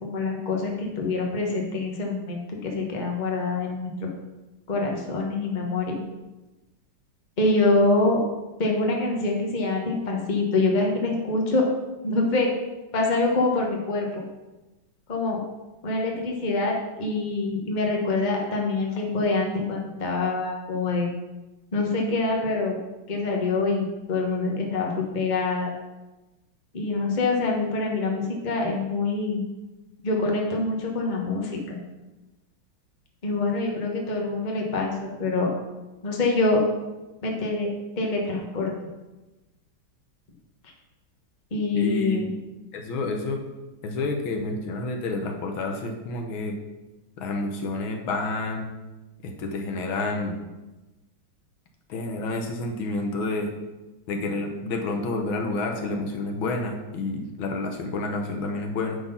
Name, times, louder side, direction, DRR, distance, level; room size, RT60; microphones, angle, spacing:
voice 1, 0.0-4.1 4.7-6.0 7.4-8.2 8.6-11.6 12.0-12.5 12.9-14.2 15.1-15.4 15.8-21.1 21.7-22.8 23.1-25.7 26.7-29.4 30.0-31.8 33.2-35.5 36.0-36.6 37.2-37.7 38.0-38.7 41.5-42.3, left 3 dB, 25° left, 0 dB, 1.1 m, -25 dB
voice 2, 41.7-42.2 42.7-43.4 43.8-46.6 47.2-48.7 49.2-50.4 51.9-53.5 54.1-59.0, left 2 dB, 75° left, 3 dB, 1.7 m, -29 dB
10.0 x 4.0 x 5.5 m, 1.1 s
omnidirectional pair, 2.3 m